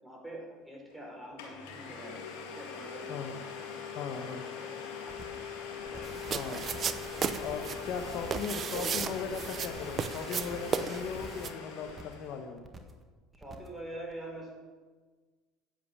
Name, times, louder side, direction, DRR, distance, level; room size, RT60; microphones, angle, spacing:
voice 1, 0.0-2.3 2.5-3.7 4.1-4.7 5.0-5.3 5.8-6.1 8.0-8.5 8.7-8.9 13.3-14.5, right 1 dB, 5° right, -1 dB, 4.5 m, -45 dB
Domestic sounds home sounds, 0.9-1.0 1.4-12.4, left 7 dB, 80° left, 1.9 m, -42 dB
voice 2, 3.1-3.4 3.9-4.4 6.3-6.6 7.4-12.7, left 6 dB, 60° left, 6 dB, 1.1 m, -38 dB
sound 1, 5.1-5.5 5.8-6.2 6.5-7.0 7.3-7.8 8.1-8.5 8.8-9.3 9.6-10.0 10.3-10.8 11.1-11.5 11.8-12.3 12.6-13.0 13.3-13.8 14.1-14.2, right 2 dB, 25° right, 1.6 m, -49 dB
sound 2, 6.0-11.5, right 7 dB, 40° right, 0.6 m, -35 dB
10.0 x 7.8 x 7.2 m, 1.4 s
hypercardioid pair, 75°, 0 cm